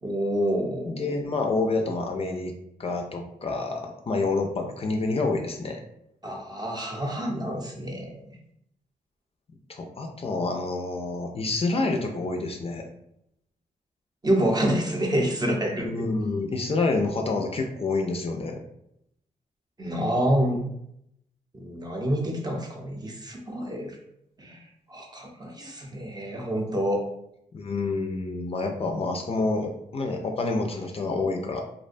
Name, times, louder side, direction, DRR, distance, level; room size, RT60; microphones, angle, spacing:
voice 1, 0.0-1.3 6.2-8.4 14.2-15.9 19.8-20.6 21.5-24.0 24.4-27.0, equal, 25° right, 0 dB, 0.6 m, -27 dB
voice 2, 0.9-2.5 2.8-5.8 9.7-12.8 15.8-18.6 25.6-25.7 27.5-31.6, left 3 dB, 40° left, 2 dB, 0.4 m, -28 dB
2.5 x 2.1 x 2.5 m, 0.77 s
cardioid pair, 65°, 15 cm